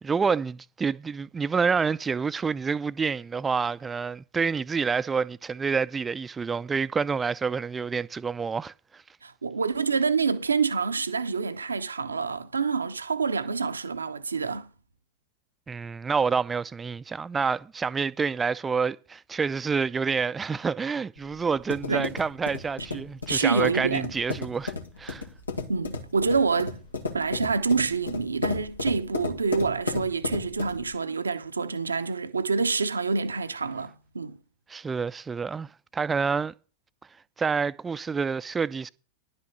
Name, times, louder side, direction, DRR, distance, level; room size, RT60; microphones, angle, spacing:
voice 1, 0.0-9.0 15.7-24.7 25.0-25.2 34.7-36.5 37.4-38.9, right 5 dB, 15° right, 0.5 m, -28 dB
voice 2, 9.2-14.7 21.9-22.1 23.3-24.1 25.7-26.8 27.1-34.4, right 4 dB, 75° right, 0.8 m, -27 dB
sound 1, 21.2-30.9, left 3 dB, 80° left, 1.6 m, -34 dB
11.0 x 6.0 x 6.9 m
figure-of-eight pair, 90°, 0 cm